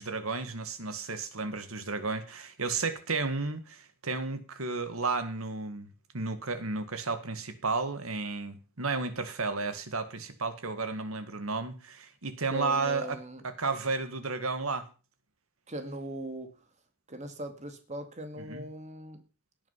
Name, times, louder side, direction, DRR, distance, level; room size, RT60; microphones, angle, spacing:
voice 1, 0.0-5.9 6.1-13.2 13.4-14.9 18.4-18.7, right 4 dB, 85° right, 1.9 m, -33 dB
voice 2, 12.5-13.4 15.7-16.5 17.1-19.2, right 1 dB, 35° right, 2.1 m, -39 dB
17.0 x 9.0 x 5.7 m
head